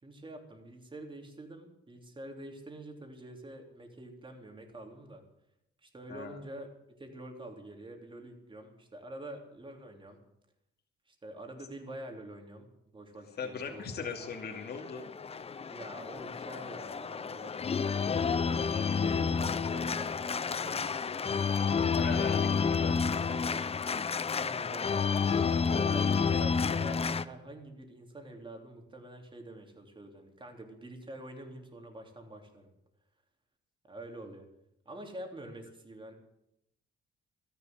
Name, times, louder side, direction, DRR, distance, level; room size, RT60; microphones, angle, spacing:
voice 1, 0.0-5.2 5.8-6.7 7.0-10.2 11.1-12.7 12.9-13.9 15.7-17.5 18.6-21.3 24.3-25.3 25.6-32.7 33.9-34.5 34.9-36.1, right 1 dB, 25° right, 3 dB, 3.5 m, -46 dB
voice 2, 13.4-15.1 21.9-23.4, left 5 dB, 55° left, 2 dB, 2.6 m, -39 dB
Organ, 14.1-27.2, left 5 dB, 30° left, 0.7 m, -30 dB
13.5 x 11.0 x 8.0 m, 0.84 s
cardioid pair, 90°, 20 cm